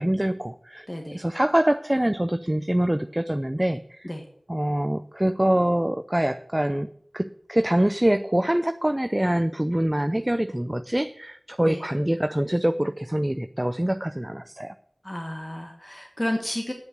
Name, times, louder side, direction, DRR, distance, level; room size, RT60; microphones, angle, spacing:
voice 1, 0.0-0.9 1.1-4.1 4.5-14.7, right 1 dB, 20° right, 10 dB, 0.5 m, -24 dB
voice 2, 0.9-1.2 4.0-4.2 11.6-11.8 15.0-16.7, left 1 dB, 25° left, 2 dB, 1.4 m, -31 dB
8.5 x 7.8 x 8.2 m, 0.65 s
wide cardioid pair, 50°, 0 cm